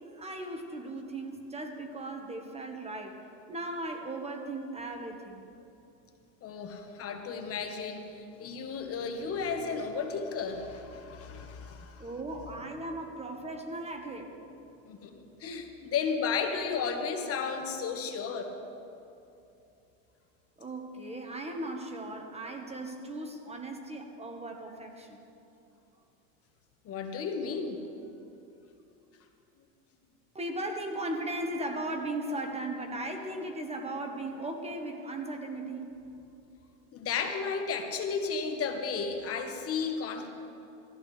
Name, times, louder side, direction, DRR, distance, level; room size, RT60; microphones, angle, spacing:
voice 1, 0.0-3.2 3.5-5.4 12.0-14.3 20.6-25.2 30.3-35.8, right 1 dB, 15° right, 3 dB, 1.2 m, -37 dB
voice 2, 6.4-12.0 14.9-18.5 26.8-27.8 36.9-40.3, left 5 dB, 35° left, 5 dB, 1.3 m, -33 dB
18.5 x 14.0 x 3.2 m, 2.8 s
supercardioid pair, 120°, 40 cm